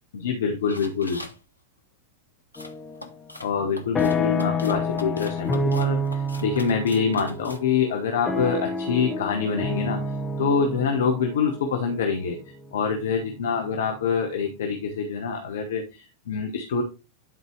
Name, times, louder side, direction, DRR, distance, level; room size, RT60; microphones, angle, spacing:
voice 1, 0.1-1.2 3.4-10.0 10.4-16.8, left 5 dB, 60° left, 4 dB, 1.0 m, -25 dB
sound 1, 0.6-1.4 2.5-7.6, left 2 dB, 85° left, 1.0 m, -42 dB
sound 2, 2.6-3.1 3.5-13.5, left 1 dB, 15° left, 0.9 m, -29 dB
11.0 x 4.6 x 3.1 m, 0.30 s
figure-of-eight pair, 90°, 0 cm